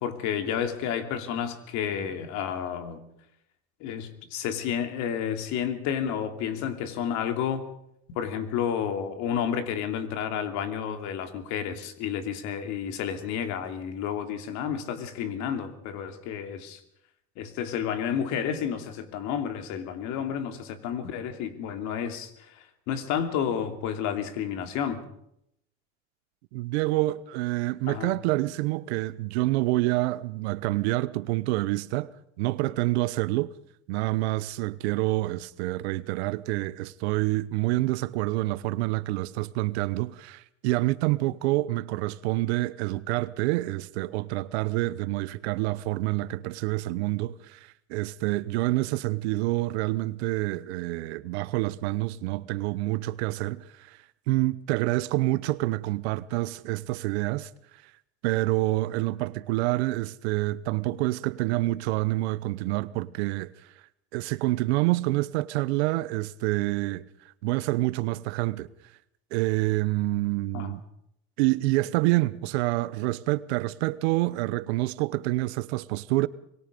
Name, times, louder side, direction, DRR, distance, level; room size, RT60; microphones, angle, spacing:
voice 1, 0.0-3.0 3.8-7.7 8.1-16.8 17.4-25.0 27.9-28.1 70.5-70.7, left 8 dB, 60° left, 3.0 m, -31 dB
voice 2, 26.5-32.1 32.4-33.5 33.9-54.0 54.3-57.5 58.2-63.5 64.1-67.0 67.4-68.7 69.3-70.8 71.4-76.3, right 19 dB, 75° right, 1.0 m, -27 dB
24.5 x 22.0 x 5.3 m
supercardioid pair, 110°, 32 cm